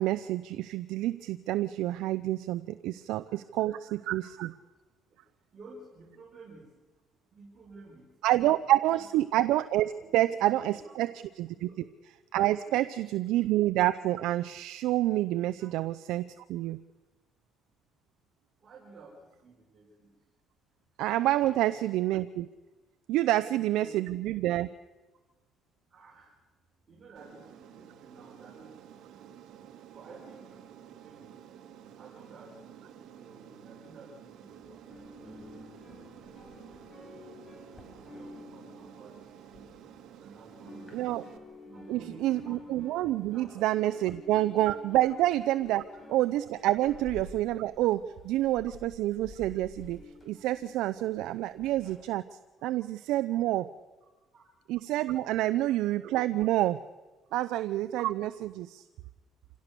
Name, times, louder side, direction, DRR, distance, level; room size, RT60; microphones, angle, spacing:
voice 1, 0.0-4.5 8.2-11.1 11.4-11.7 12.3-16.8 21.0-22.5 23.1-24.7 40.9-41.2 41.9-45.8 46.1-50.0 50.3-52.2 52.6-53.7 54.7-56.8 57.3-58.8, right 15 dB, 85° right, 11 dB, 0.6 m, -28 dB
voice 2, 3.3-3.7 4.2-4.3 5.5-6.7 7.3-8.2 8.6-9.1 10.0-10.2 10.6-11.1 11.5-11.9 12.7-12.9 15.6-15.7 18.6-20.2 21.4-21.8 23.3-23.9 25.9-26.4 26.9-28.7 29.1-29.3 29.6-31.5 32.0-35.5 36.1-37.3 37.9-41.2 41.6-42.7 43.3-44.4 54.3-54.4 55.3-55.5, right 3 dB, 40° right, -3 dB, 5.0 m, -54 dB
Aircraft, 27.2-41.4, right 9 dB, 70° right, 1.8 m, -51 dB
sound 1, 34.9-40.2 40.5-51.9, left 2 dB, 20° left, 6.1 m, -50 dB
27.0 x 17.0 x 6.8 m, 1.2 s
cardioid pair, 120°, 0 cm